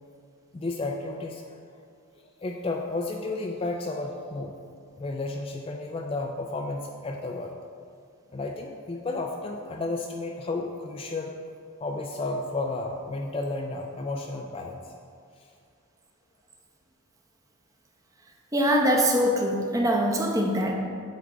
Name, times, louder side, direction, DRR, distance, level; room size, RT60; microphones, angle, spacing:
voice 1, 0.5-1.6 2.4-4.5 5.0-7.5 8.3-11.3 11.8-14.8, left 2 dB, 25° left, 2 dB, 0.3 m, -32 dB
voice 2, 18.5-20.7, equal, 15° right, 1 dB, 0.7 m, -23 dB
8.4 x 3.5 x 6.1 m, 2.2 s
head